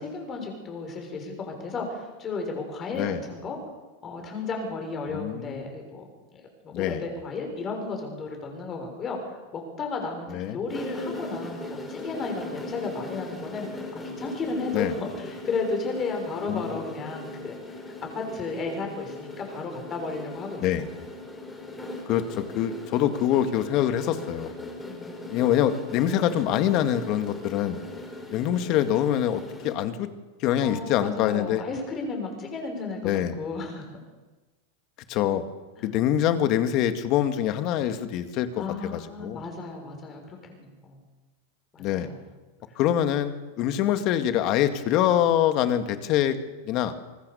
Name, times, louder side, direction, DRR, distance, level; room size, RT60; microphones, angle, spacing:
voice 1, 0.0-3.6 4.0-6.1 6.3-10.3 10.5-17.5 17.8-20.7 24.9-25.4 30.6-33.8 35.8-35.9 38.6-41.0 41.7-42.1, left 3 dB, 25° left, 3 dB, 6.8 m, -34 dB
voice 2, 5.1-5.7 6.7-7.0 10.3-10.6 14.7-14.9 16.5-16.8 20.6-20.9 22.1-24.5 25.3-27.8 28.3-30.1 30.4-31.6 33.0-33.4 35.1-35.4 35.8-39.4 41.8-42.1 42.8-46.4 46.6-46.9, left 11 dB, 45° left, 9 dB, 2.0 m, -25 dB
sound 1, 10.7-29.8, left 2 dB, 10° left, 4.4 m, -39 dB
25.0 x 20.5 x 7.1 m, 1.2 s
supercardioid pair, 140°, 0 cm